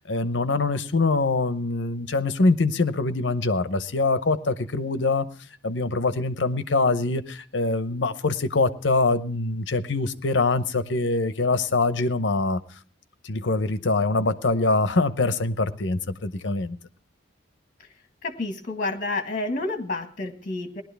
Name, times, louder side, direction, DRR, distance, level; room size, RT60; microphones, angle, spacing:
voice 1, 0.0-5.3 5.6-12.6 13.2-16.8, left 3 dB, 70° left, 12 dB, 0.8 m, -24 dB
voice 2, 18.2-20.8, left 2 dB, 45° left, 6 dB, 1.6 m, -29 dB
19.0 x 12.0 x 3.4 m, 0.42 s
head